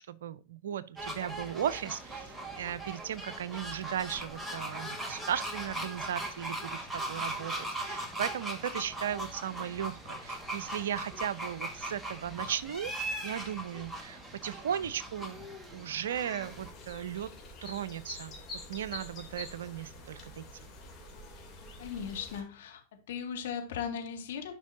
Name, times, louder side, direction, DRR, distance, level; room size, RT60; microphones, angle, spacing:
voice 1, 0.0-12.9 13.2-15.5 15.7-17.3 17.6-18.4 18.7-20.5, right 10 dB, 65° right, 0.6 m, -36 dB
sound 1, 1.0-16.7, right 1 dB, 5° right, 1.7 m, -39 dB
sound 2, 16.4-22.4, left 2 dB, 25° left, 2.9 m, -47 dB
voice 2, 21.8-24.6, left 7 dB, 65° left, 2.0 m, -38 dB
11.5 x 5.4 x 2.7 m
figure-of-eight pair, 90°, 0 cm